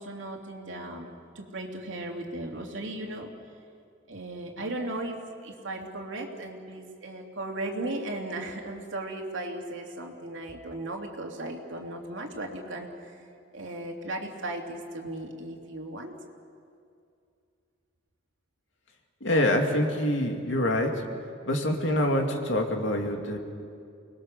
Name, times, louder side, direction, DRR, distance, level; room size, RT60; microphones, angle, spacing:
voice 1, 0.0-3.3 4.1-13.2 13.5-16.1, right 1 dB, 70° right, 1 dB, 2.8 m, -36 dB
voice 2, 19.2-21.0 21.5-23.4, left 1 dB, 65° left, 3 dB, 2.5 m, -25 dB
29.5 x 20.5 x 6.8 m, 2.4 s
head